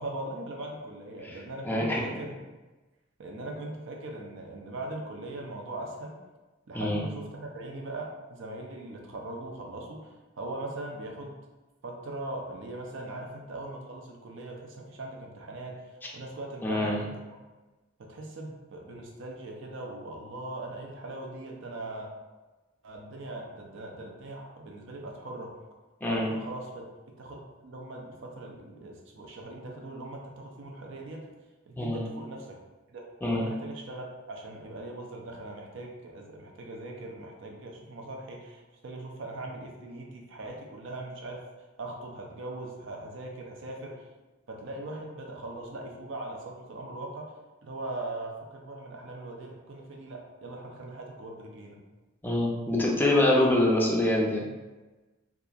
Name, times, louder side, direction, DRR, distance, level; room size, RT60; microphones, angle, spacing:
voice 1, 0.0-2.4 3.2-6.2 6.7-11.4 11.8-17.4 18.0-22.1 22.8-25.5 26.0-26.9 27.2-31.3 31.7-32.6 32.9-41.4 41.8-44.0 44.5-47.3 47.6-51.8, right 2 dB, 65° right, 1 dB, 0.5 m, -40 dB
voice 2, 1.6-2.0 6.7-7.0 16.6-17.0 26.0-26.3 31.8-32.0 33.2-33.4 52.2-54.5, left 1 dB, 10° left, -3 dB, 0.4 m, -25 dB
2.8 x 2.4 x 2.4 m, 1.2 s
head